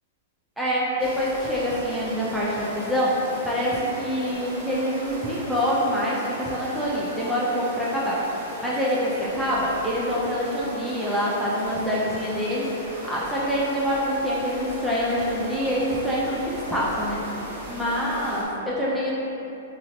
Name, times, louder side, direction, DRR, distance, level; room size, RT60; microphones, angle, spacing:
voice 1, 0.6-8.3 8.6-17.2 17.7-19.1, equal, 5° right, -8 dB, 0.4 m, -26 dB
sound 1, 1.0-18.4, equal, 50° right, 0.8 m, -37 dB
2.8 x 2.6 x 2.9 m, 2.9 s
hypercardioid pair, 135°, 0 cm